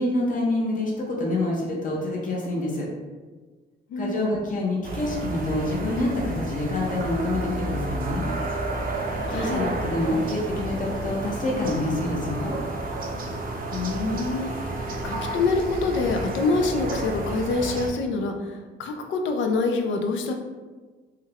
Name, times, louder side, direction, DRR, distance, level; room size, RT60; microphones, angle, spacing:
voice 1, 0.0-2.9 4.0-8.3 9.3-12.6, left 1 dB, 40° left, -2 dB, 0.8 m, -27 dB
voice 2, 3.9-4.4 9.3-9.7 13.7-14.7 15.0-20.3, left 3 dB, 75° left, 4 dB, 0.5 m, -26 dB
sound 1, 4.8-17.9, right 2 dB, 45° right, 0.6 m, -31 dB
3.2 x 2.2 x 3.5 m, 1.3 s
cardioid pair, 90°, 20 cm